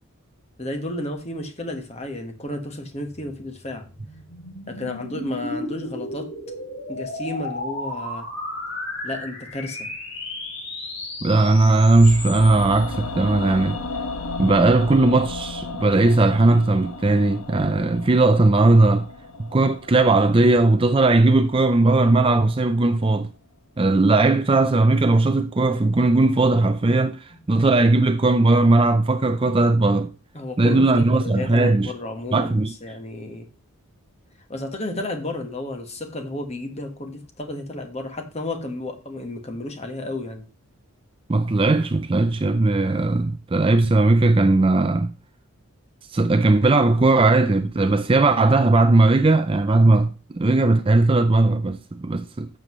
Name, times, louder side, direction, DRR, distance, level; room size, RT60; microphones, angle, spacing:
voice 1, 0.6-3.9 4.7-6.3 6.9-8.3 9.0-9.9 27.3-27.4 30.3-33.5 34.5-40.4, left 1 dB, 30° left, 1.5 m, -32 dB
sound 1, 3.1-12.8, left 2 dB, 55° left, 3.5 m, -34 dB
voice 2, 11.2-13.8 14.4-19.1 19.4-23.3 23.8-30.1 30.6-31.9 32.3-32.7 41.3-45.1 46.1-52.5, right 2 dB, 25° right, 0.4 m, -18 dB
sound 2, 11.8-21.9 22.2-22.3, left 3 dB, 80° left, 1.4 m, -34 dB
11.5 x 7.7 x 3.2 m
head